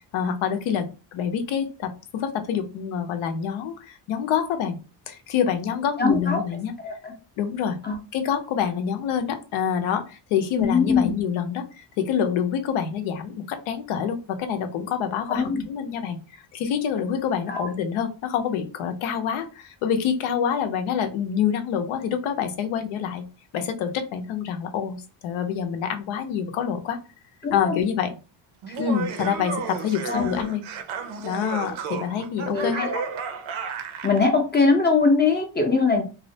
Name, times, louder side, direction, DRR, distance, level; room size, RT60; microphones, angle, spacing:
voice 1, 0.1-4.8 5.1-6.7 7.4-7.8 8.1-23.3 23.5-27.0 27.5-28.1 28.8-30.6 31.2-32.9, left 8 dB, 80° left, 8 dB, 0.6 m, -26 dB
voice 2, 6.0-6.4 6.8-7.1 7.8-7.9 10.6-11.1 15.3-15.6 17.5-17.7 27.4-27.8 28.7-28.8 30.1-30.4 32.5-33.1 34.0-36.0, left 4 dB, 20° left, 2 dB, 0.5 m, -22 dB
Laughter, 28.6-34.2, right 6 dB, 70° right, 0.6 m, -33 dB
2.4 x 2.1 x 2.7 m, 0.32 s
cardioid pair, 110°, 49 cm